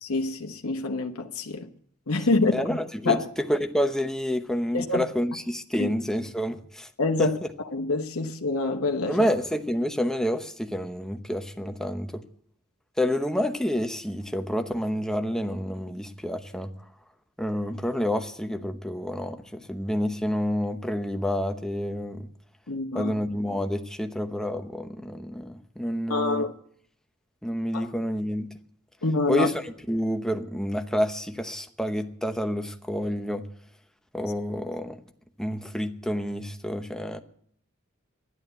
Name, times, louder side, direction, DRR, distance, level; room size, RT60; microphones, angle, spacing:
voice 1, 0.0-1.7 2.1-2.5 3.0-3.2 4.7-5.0 5.8-5.9 7.0-7.4 7.7-9.2 22.7-23.1 26.1-26.5 27.7-27.9 29.0-29.5, left 3 dB, 85° left, 1.1 m, -26 dB
voice 2, 2.5-6.9 7.2-7.3 9.1-12.2 13.0-16.7 17.4-22.3 22.9-26.5 27.4-28.5 29.3-33.5 34.1-35.0 35.4-37.2, equal, 5° left, 0.8 m, -28 dB
12.0 x 11.0 x 7.9 m
head